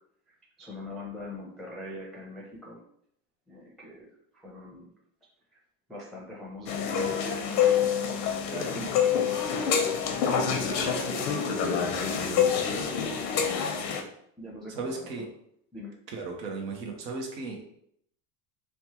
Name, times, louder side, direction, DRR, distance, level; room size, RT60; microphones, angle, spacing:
voice 1, 0.6-2.8 3.5-4.1 4.4-4.9 5.9-7.9 8.5-9.9 10.2-13.2 14.4-15.0 15.7-15.9, left 1 dB, ahead, -4 dB, 0.5 m, -43 dB
sound 1, 6.7-14.0, left 7 dB, 85° left, 0.7 m, -27 dB
voice 2, 14.7-15.3 16.1-17.6, right 3 dB, 85° right, 1 dB, 0.9 m, -35 dB
3.0 x 2.2 x 2.9 m, 0.70 s
hypercardioid pair, 90°, 47 cm